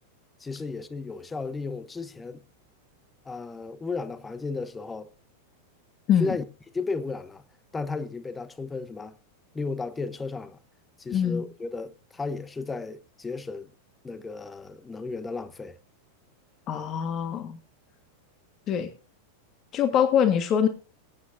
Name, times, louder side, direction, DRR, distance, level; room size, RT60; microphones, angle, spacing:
voice 1, 0.4-2.4 3.2-5.1 6.2-6.4 6.7-7.4 7.7-9.1 9.5-10.6 11.0-13.7 14.0-15.8, left 4 dB, 15° left, 0.9 m, -34 dB
voice 2, 11.1-11.4 16.7-17.6 18.7-18.9 19.7-20.7, left 8 dB, 30° left, 1.6 m, -23 dB
22.0 x 9.6 x 2.6 m
figure-of-eight pair, 90°, 0 cm